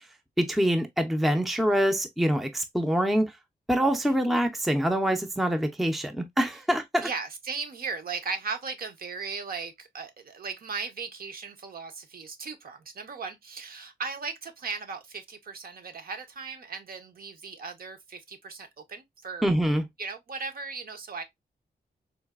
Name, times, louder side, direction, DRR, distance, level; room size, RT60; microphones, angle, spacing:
voice 1, 0.4-3.3 3.7-7.1 19.4-19.8, equal, ahead, 0.4 m, -25 dB
voice 2, 7.0-19.4 20.0-21.2, right 5 dB, 60° right, 0.6 m, -37 dB
3.9 x 2.5 x 2.3 m
wide cardioid pair, 145°, 17 cm